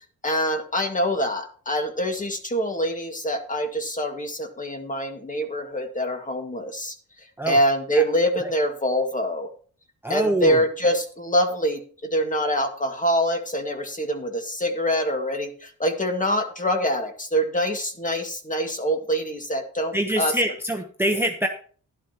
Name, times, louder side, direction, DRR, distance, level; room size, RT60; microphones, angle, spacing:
voice 1, 0.2-7.0 7.5-9.5 10.1-20.3, equal, 25° left, 5 dB, 2.0 m, -25 dB
voice 2, 10.0-10.6 19.9-21.5, right 1 dB, 5° right, 3 dB, 0.9 m, -24 dB
11.5 x 11.5 x 3.0 m, 0.44 s
cardioid pair, 80°, 31 cm